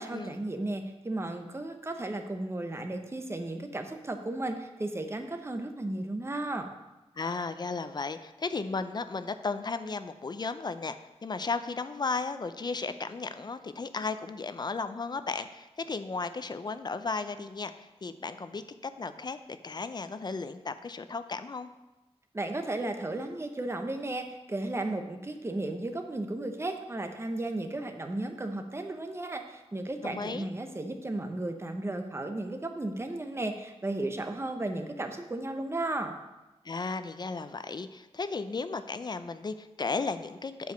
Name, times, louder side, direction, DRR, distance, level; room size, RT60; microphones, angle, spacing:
voice 1, 0.0-6.7 22.3-36.1, right 2 dB, 25° right, 6 dB, 0.9 m, -34 dB
voice 2, 7.2-11.0 11.2-21.7 30.0-30.5 36.6-40.7, left 4 dB, 40° left, 11 dB, 0.5 m, -35 dB
8.2 x 4.7 x 6.3 m, 1.0 s
wide cardioid pair, 95°, 11 cm